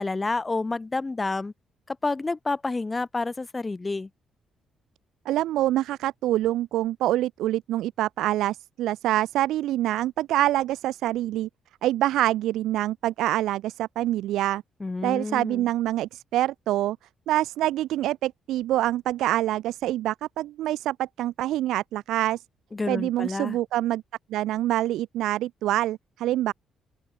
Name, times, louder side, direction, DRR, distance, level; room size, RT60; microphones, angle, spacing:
voice 1, 0.0-1.5 1.9-4.1 14.8-15.7 22.7-23.6, left 3 dB, 20° left, 1.7 m, -29 dB
voice 2, 5.2-11.5 11.8-14.6 15.0-17.0 17.3-22.4 22.9-24.0 24.3-26.5, right 14 dB, 85° right, 2.5 m, -26 dB
open air
cardioid pair, 90°, 0 cm